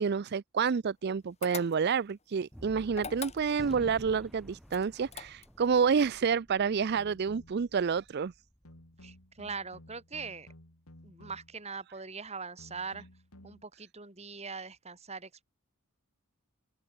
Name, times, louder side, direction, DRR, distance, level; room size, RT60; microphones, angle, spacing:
voice 1, 0.0-8.3, right 6 dB, 45° right, 0.4 m, -29 dB
sound 1, 1.4-2.1 2.9-3.8 4.7-5.7, left 6 dB, 30° left, 2.8 m, -42 dB
Gunshot gunfire, 2.5-9.1, equal, ahead, 3.9 m, -51 dB
sound 2, 6.9-7.7 8.7-11.7 12.6-13.6, left 1 dB, 75° left, 4.8 m, -55 dB
voice 2, 9.0-10.5 11.0-13.1 13.4-15.4, right 5 dB, 30° right, 3.1 m, -41 dB
head